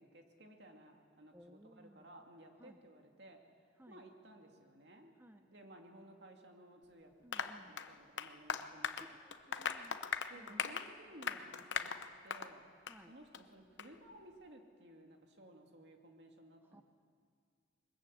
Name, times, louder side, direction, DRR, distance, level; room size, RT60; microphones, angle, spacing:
voice 1, 0.0-3.4 3.9-9.1 9.5-9.7 10.3-11.9 12.2-12.6 13.1-16.8, right 1 dB, 60° right, 3 dB, 2.5 m, -57 dB
voice 2, 1.3-2.0 2.6-2.8 3.8-4.0 5.2-5.4 7.2-7.7 9.0-10.0 10.3-10.5 12.9-13.1 16.7-16.8, equal, 10° right, 7 dB, 0.6 m, -59 dB
Applause, 7.3-12.5 12.9-13.0 13.3-13.4 13.8-13.9, left 6 dB, 75° left, 0.9 m, -40 dB
22.0 x 21.0 x 8.3 m, 2.1 s
head